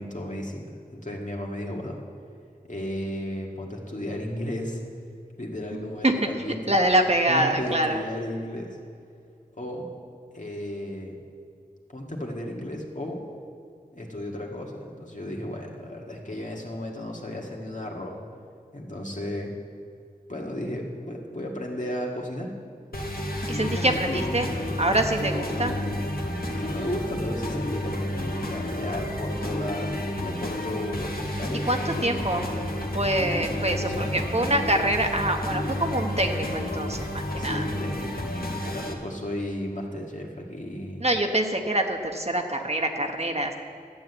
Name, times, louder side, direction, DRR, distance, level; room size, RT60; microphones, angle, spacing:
voice 1, 0.0-2.0 2.7-4.8 5.4-6.7 7.3-8.8 9.6-9.9 10.3-11.2 11.9-13.2 13.9-18.2 18.7-19.5 20.3-22.5 23.5-24.6 25.3-26.1 26.5-32.5 33.7-34.3 37.4-41.1, left 1 dB, 55° left, -1 dB, 1.9 m, -34 dB
voice 2, 6.7-8.0 23.5-24.5 24.8-25.8 31.6-32.6 32.9-37.7 41.0-43.5, right 1 dB, 40° right, 4 dB, 1.1 m, -25 dB
sound 1, 22.9-38.9, left 1 dB, 70° left, 1.5 m, -31 dB
12.0 x 7.9 x 8.1 m, 2.4 s
wide cardioid pair, 40°, 16 cm